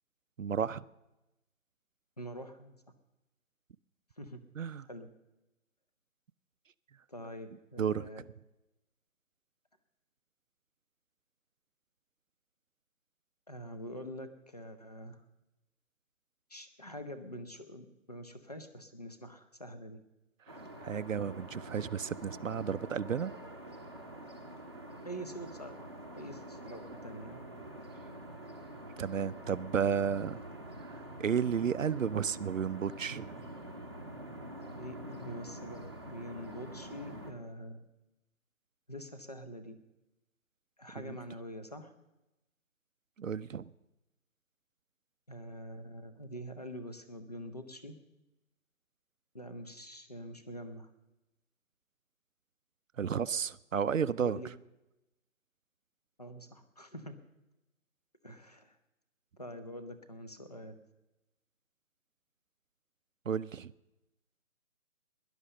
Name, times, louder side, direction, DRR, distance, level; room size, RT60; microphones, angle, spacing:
voice 1, 0.4-0.8 4.6-4.9 7.8-8.1 20.5-23.3 29.0-30.4 30.9-33.3 41.1-41.2 43.2-43.6 53.0-54.4 63.3-63.7, right 7 dB, 65° right, 17 dB, 0.6 m, -32 dB
voice 2, 2.2-2.8 4.2-4.4 4.9-5.1 7.1-8.2 13.5-15.2 16.5-20.0 25.0-25.9 26.2-27.4 34.8-37.9 38.9-39.8 40.8-41.9 45.3-47.9 49.3-50.9 54.2-54.5 56.2-57.2 58.2-58.8 59.4-60.8, equal, 30° left, 9 dB, 0.8 m, -45 dB
sound 1, 20.5-37.3, right 1 dB, 20° right, 0.9 m, -46 dB
17.0 x 11.5 x 6.6 m, 0.98 s
figure-of-eight pair, 175°, 42 cm